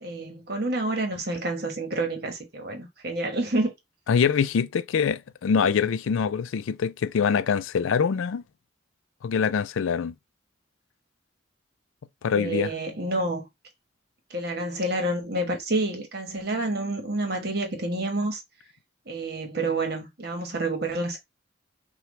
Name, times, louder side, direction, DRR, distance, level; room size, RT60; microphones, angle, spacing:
voice 1, 0.0-3.7 12.3-13.4 14.3-18.4 19.1-21.2, right 2 dB, 50° right, 1.2 m, -28 dB
voice 2, 4.1-8.4 9.2-10.1 12.2-12.7, left 6 dB, 90° left, 0.4 m, -24 dB
5.8 x 2.3 x 3.1 m
head